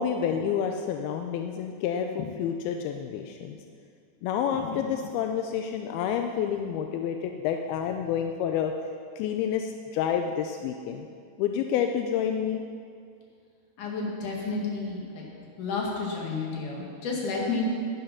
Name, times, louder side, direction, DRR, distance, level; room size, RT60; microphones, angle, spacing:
voice 1, 0.0-3.6 4.2-8.7 9.2-11.1 11.4-12.6, left 8 dB, 80° left, 5 dB, 2.2 m, -29 dB
voice 2, 13.8-15.2 15.6-17.6, left 4 dB, 55° left, -2 dB, 3.2 m, -31 dB
12.0 x 10.5 x 5.9 m, 2.2 s
omnidirectional pair, 4.9 m